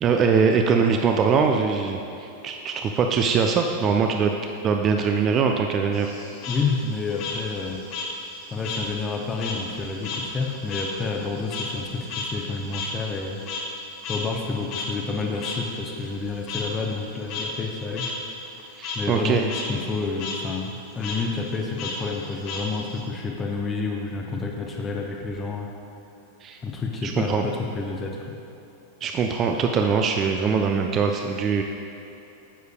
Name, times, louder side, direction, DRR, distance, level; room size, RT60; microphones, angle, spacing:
voice 1, 0.0-4.3 4.6-6.1 18.8-19.4 26.4-26.6 27.0-27.4 29.0-31.6, right 5 dB, 30° right, 4 dB, 0.4 m, -22 dB
Frog, 5.9-8.9 9.2-13.8 14.0-14.2 14.7-14.8 15.4-15.5 16.5-16.6 17.1-17.4 17.9-18.1 18.5-19.0 19.4-19.6 19.9-20.4 21.0-21.2 21.8-23.0, left 4 dB, 40° left, 1.3 m, -33 dB
voice 2, 6.5-7.8 8.5-13.4 14.1-18.1 18.9-25.7 26.6-28.3, left 4 dB, 20° left, 1 dB, 0.7 m, -29 dB
9.8 x 7.9 x 2.2 m, 2.9 s
figure-of-eight pair, 90°, 0 cm